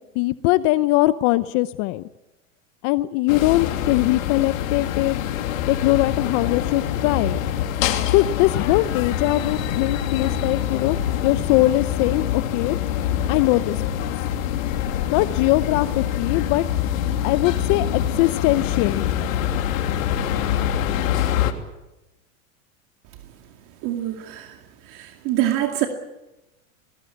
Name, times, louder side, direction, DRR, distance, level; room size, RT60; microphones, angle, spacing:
voice 1, 0.0-2.0 2.8-5.2 5.7-7.4 8.1-11.0 11.2-12.8 13.3-14.0 15.1-16.6 17.2-19.1, left 18 dB, 45° left, 15 dB, 0.8 m, -21 dB
sound 1, 3.3-21.5, left 10 dB, 75° left, 2.9 m, -25 dB
voice 2, 23.8-24.6 24.8-25.9, right 13 dB, 50° right, 4 dB, 2.4 m, -25 dB
21.5 x 20.5 x 8.6 m, 0.99 s
supercardioid pair, 125°, 41 cm